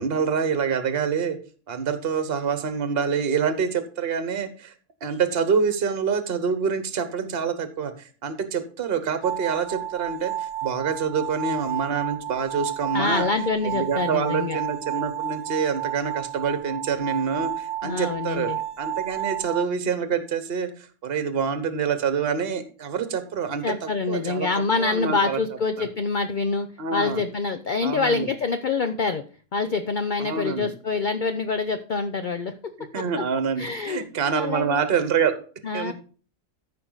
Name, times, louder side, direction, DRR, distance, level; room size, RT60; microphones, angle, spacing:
voice 1, 0.0-1.4 1.7-4.7 5.0-13.3 13.6-18.5 18.8-25.4 25.8-25.9 26.8-27.2 27.8-28.3 30.2-30.7 32.8-35.3 35.7-35.9, right 6 dB, 40° right, 10 dB, 1.3 m, -26 dB
sound 1, 9.2-19.7, right 11 dB, 80° right, 1.2 m, -32 dB
voice 2, 12.9-14.6 17.8-18.6 23.6-29.2 29.5-32.5 33.0-33.2 33.6-34.0 34.3-34.8 35.6-35.9, left 4 dB, 55° left, 9 dB, 0.5 m, -26 dB
14.0 x 5.7 x 4.0 m, 0.40 s
omnidirectional pair, 1.6 m